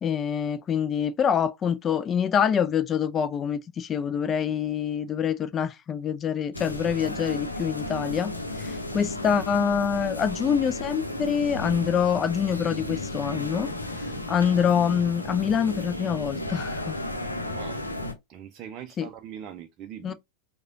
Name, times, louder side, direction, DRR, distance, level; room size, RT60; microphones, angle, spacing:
voice 1, 0.0-8.3 8.6-13.7 14.3-17.0 19.0-19.1 20.0-20.1, left 7 dB, 25° left, 0.4 m, -25 dB
sound 1, 6.5-18.1, left 1 dB, 85° left, 0.7 m, -33 dB
voice 2, 17.4-17.8 18.3-20.1, right 9 dB, 35° right, 0.5 m, -42 dB
4.8 x 2.3 x 2.6 m
figure-of-eight pair, 90°, 0 cm